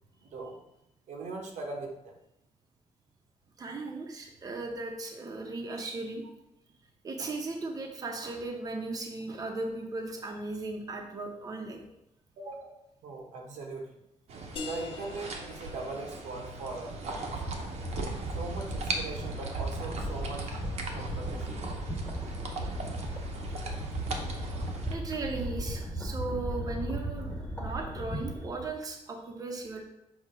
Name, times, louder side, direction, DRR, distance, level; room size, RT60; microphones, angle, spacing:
voice 1, 0.2-0.6 1.1-2.1 12.4-13.9 14.6-17.4 18.4-20.5 20.9-21.5, right 3 dB, 85° right, 1 dB, 1.2 m, -40 dB
voice 2, 3.6-6.2 7.0-11.8 24.9-29.8, right 2 dB, 30° right, 2 dB, 0.8 m, -37 dB
sound 1, 14.3-24.9, right 2 dB, 60° right, 0.9 m, -39 dB
sound 2, 14.6-19.9, left 4 dB, 45° left, 0.7 m, -47 dB
sound 3, 17.2-28.7, right 1 dB, 15° left, 1.3 m, -36 dB
6.0 x 2.9 x 5.6 m, 0.84 s
wide cardioid pair, 160°, 12 cm